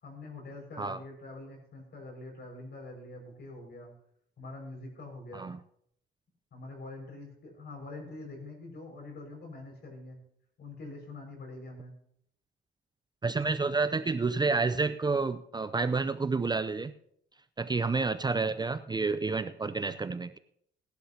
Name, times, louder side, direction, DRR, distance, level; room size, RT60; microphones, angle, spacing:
voice 1, 0.0-3.9 4.4-5.5 6.5-10.2 10.6-12.0, left 2 dB, 55° left, 2 dB, 5.7 m, -45 dB
voice 2, 13.2-16.9 17.6-20.4, right 4 dB, 20° right, 11 dB, 0.5 m, -29 dB
18.0 x 11.5 x 2.9 m, 0.68 s
cardioid pair, 90°, 20 cm